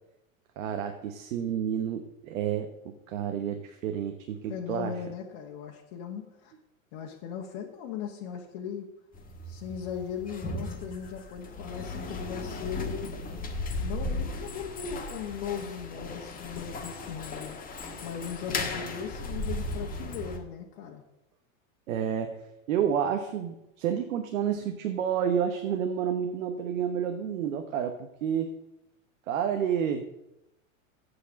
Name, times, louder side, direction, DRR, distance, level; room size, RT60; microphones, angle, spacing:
voice 1, 0.6-4.9 21.9-22.4 22.7-28.5 29.3-30.0, right 8 dB, 75° right, 6 dB, 1.2 m, -30 dB
voice 2, 4.5-6.5 6.9-8.9 9.4-13.1 13.8-17.6 18.0-21.0, left 7 dB, 55° left, 0 dB, 1.5 m, -38 dB
sound 1, 9.1-20.4, left 2 dB, 20° left, 1.5 m, -36 dB
8.0 x 6.4 x 7.4 m, 0.88 s
hypercardioid pair, 115°, 41 cm